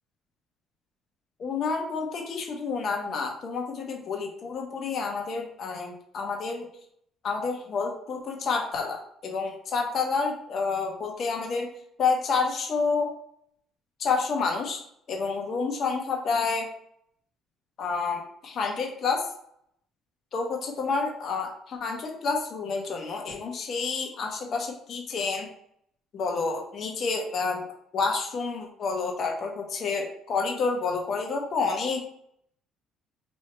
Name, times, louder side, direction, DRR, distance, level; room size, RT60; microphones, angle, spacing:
voice 1, 1.4-6.7 7.2-11.7 12.0-13.1 14.0-14.8 15.1-16.7 17.8-19.2 20.3-25.5 26.1-27.7 27.9-32.1, left 4 dB, 55° left, 1 dB, 1.0 m, -29 dB
3.2 x 2.7 x 4.4 m, 0.70 s
supercardioid pair, 85°, 0 cm